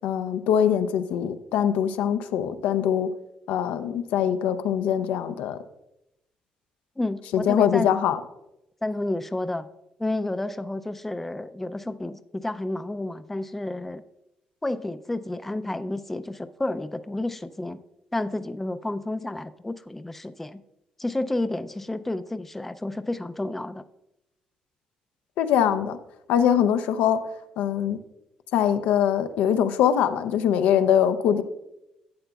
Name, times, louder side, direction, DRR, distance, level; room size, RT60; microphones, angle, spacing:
voice 1, 0.0-3.1 3.5-5.6 7.3-8.2 25.4-26.0 26.3-27.2 27.6-28.0 28.5-31.4, left 9 dB, 90° left, 10 dB, 0.5 m, -22 dB
voice 2, 7.0-7.9 8.8-9.7 10.0-14.0 14.6-17.8 18.1-20.6 21.0-23.8, left 2 dB, 10° left, 11 dB, 0.3 m, -30 dB
11.5 x 7.9 x 2.3 m, 0.88 s
cardioid pair, 110°, 2 cm